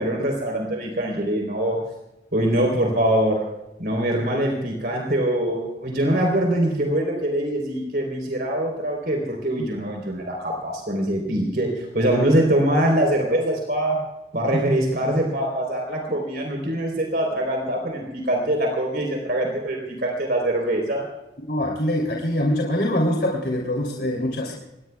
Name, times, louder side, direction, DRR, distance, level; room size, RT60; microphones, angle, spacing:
voice 1, 0.0-1.8 2.3-3.5 3.8-14.0 14.3-21.1, right 1 dB, 60° right, 1 dB, 3.8 m, -23 dB
voice 2, 21.5-24.5, left 1 dB, 65° left, -1 dB, 3.0 m, -24 dB
26.0 x 20.0 x 2.3 m, 0.93 s
head